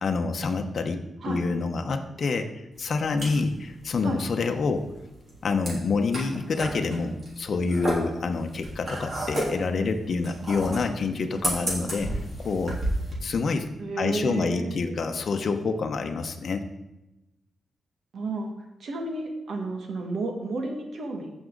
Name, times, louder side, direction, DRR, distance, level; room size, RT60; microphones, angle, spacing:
voice 1, 0.0-4.9 5.4-12.1 12.4-12.8 13.2-13.7 14.0-16.7, left 4 dB, 55° left, 5 dB, 0.8 m, -27 dB
sound 1, 2.7-13.1, right 1 dB, 40° right, 3.5 m, -33 dB
voice 2, 13.8-15.1 18.1-18.5 18.8-21.3, right 3 dB, 70° right, 3 dB, 1.8 m, -32 dB
14.5 x 6.2 x 3.9 m, 0.99 s
wide cardioid pair, 125°, 0 cm